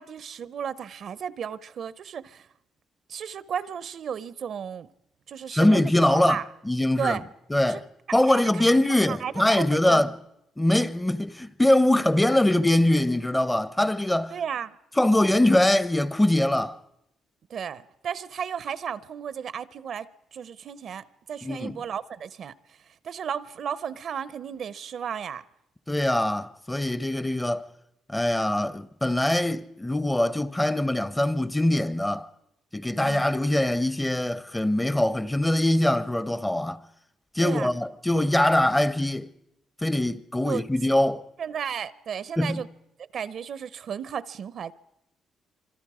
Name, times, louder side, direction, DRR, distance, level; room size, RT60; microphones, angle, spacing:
voice 1, 0.0-2.5 3.1-4.9 5.3-6.4 7.0-7.3 7.6-7.8 8.1-8.6 9.1-10.0 14.3-14.8 17.5-25.4 33.0-33.4 37.4-37.7 40.5-40.6 41.4-42.7 43.0-44.7, right 8 dB, 60° right, 0.7 m, -34 dB
voice 2, 5.5-6.4 6.7-7.2 7.5-7.8 8.1-10.1 10.6-14.3 15.0-16.8 21.4-21.8 25.9-27.7 28.1-32.3 32.7-36.8 37.3-39.3 39.8-41.2 42.4-42.6, left 1 dB, 10° left, 0.7 m, -23 dB
25.5 x 25.5 x 4.9 m
cardioid pair, 90°, 0 cm